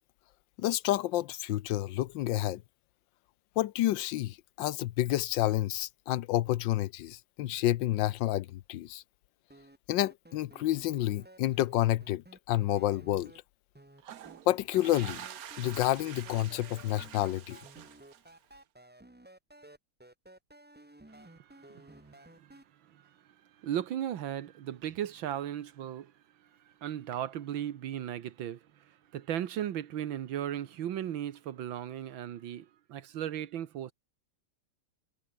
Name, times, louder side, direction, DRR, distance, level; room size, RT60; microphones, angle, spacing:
voice 1, 0.6-2.6 3.6-9.0 9.9-13.3 14.5-15.2 15.6-17.6, left 15 dB, 75° left, 1.3 m, -29 dB
sound 1, 9.5-13.4 13.7-14.4 14.7-22.6, right 1 dB, 10° right, 0.5 m, -54 dB
sound 2, 14.0-18.5, right 10 dB, 55° right, 1.2 m, -47 dB
voice 2, 23.6-26.1 26.8-28.6 29.1-33.9, right 10 dB, 85° right, 1.9 m, -36 dB
omnidirectional pair, 2.1 m